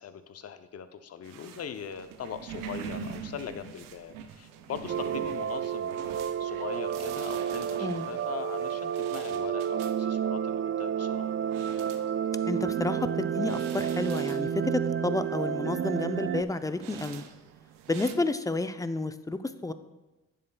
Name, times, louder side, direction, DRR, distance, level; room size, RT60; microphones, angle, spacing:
voice 1, 0.0-11.3, left 8 dB, 50° left, 10 dB, 0.7 m, -41 dB
sound 1, 1.2-18.1, right 7 dB, 90° right, 0.6 m, -45 dB
sound 2, 4.9-16.4, right 9 dB, 40° right, 0.4 m, -30 dB
voice 2, 12.5-17.2 17.9-19.7, left 2 dB, 10° left, 11 dB, 0.5 m, -30 dB
10.5 x 7.5 x 2.3 m, 1.1 s
supercardioid pair, 50°, 32 cm